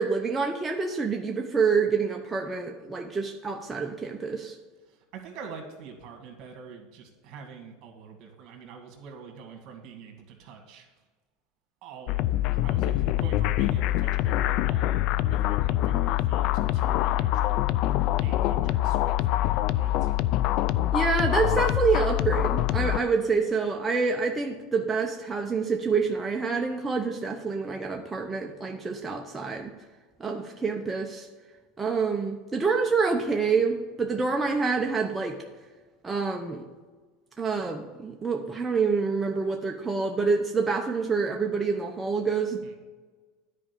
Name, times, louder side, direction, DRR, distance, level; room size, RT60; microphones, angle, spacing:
voice 1, 0.0-4.6 20.9-29.7 30.2-31.3 31.8-35.4 36.0-36.6 37.4-42.6, right 5 dB, 15° right, 2 dB, 0.8 m, -27 dB
voice 2, 4.8-11.0 11.8-17.9 18.2-20.1 42.6-42.7, right 6 dB, 55° right, 4 dB, 2.1 m, -45 dB
sound 1, 12.1-23.0, left 14 dB, 60° left, 0.4 m, -25 dB
10.0 x 4.9 x 7.0 m, 1.3 s
supercardioid pair, 115°, 0 cm